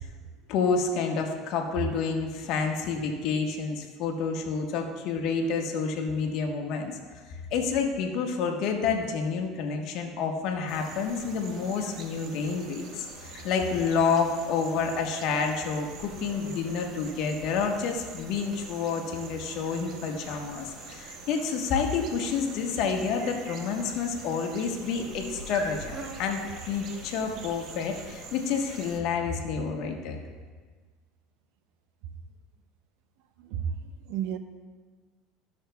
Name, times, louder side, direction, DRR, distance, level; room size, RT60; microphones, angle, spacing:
voice 1, 0.5-6.9 7.3-30.2, left 5 dB, 65° left, 3 dB, 1.2 m, -29 dB
sound 1, 10.7-29.0, right 3 dB, 50° right, 1.1 m, -44 dB
voice 2, 33.4-34.4, right 8 dB, 75° right, 9 dB, 0.6 m, -32 dB
14.5 x 6.4 x 2.3 m, 1.5 s
supercardioid pair, 100°, 0 cm